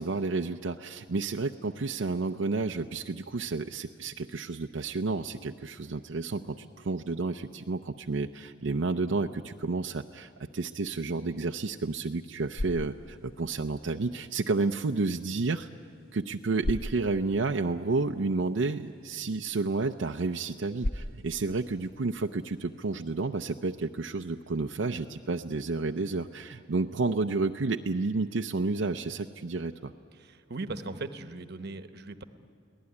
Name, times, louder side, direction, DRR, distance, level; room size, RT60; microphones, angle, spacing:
voice 1, 0.0-15.7 16.1-29.9, right 3 dB, 90° right, 5 dB, 0.6 m, -31 dB
sound 1, 12.2-23.3, left 1 dB, 50° left, 0.7 m, -42 dB
voice 2, 30.2-32.2, right 2 dB, 60° right, 9 dB, 1.0 m, -38 dB
23.5 x 17.5 x 9.7 m, 2.2 s
head